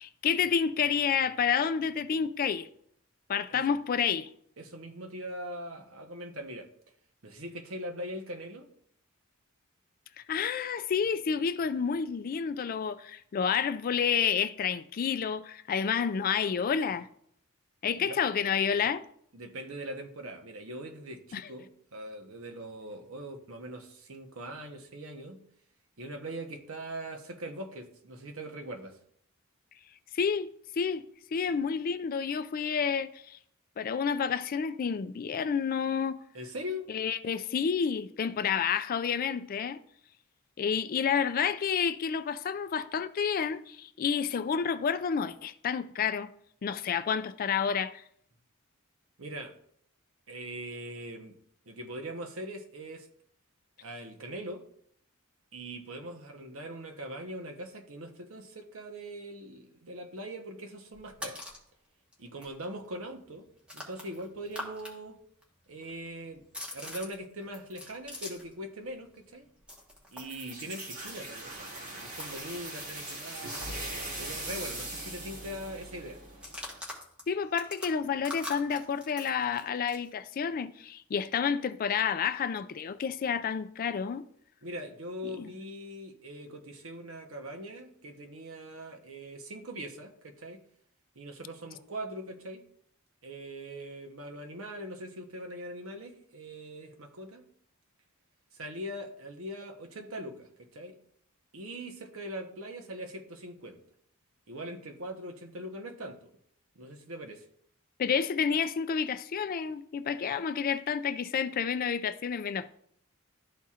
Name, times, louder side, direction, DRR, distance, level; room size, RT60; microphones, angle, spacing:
voice 1, 0.0-2.7 3.3-4.3 10.2-17.1 17.8-19.0 21.3-21.4 30.1-33.4 33.8-36.2 36.9-39.8 40.6-46.3 46.6-48.0 77.3-84.3 85.4-85.5 108.0-112.7, left 7 dB, 40° left, 0.3 m, -29 dB
voice 2, 4.6-6.7 7.2-8.7 17.9-18.2 19.3-25.4 26.0-29.0 36.3-36.9 49.2-49.6 50.3-51.4 51.7-53.1 53.8-54.6 55.5-61.4 62.2-63.5 63.7-65.2 65.7-66.4 66.7-69.5 70.1-73.7 74.2-76.2 84.6-90.6 91.2-92.6 93.2-97.4 98.5-101.0 101.5-103.8 104.5-106.3 106.7-107.5, right 1 dB, 65° right, 0.9 m, -41 dB
sound 1, 60.9-61.7 62.1-62.2 62.4-64.9 65.2-68.6 68.9-74.5 74.8-74.9 75.2-75.5 76.3-80.1, left 1 dB, 5° right, 1.2 m, -45 dB
sound 2, 70.2-76.8, right 1 dB, 85° right, 1.9 m, -40 dB
12.5 x 4.2 x 2.4 m
head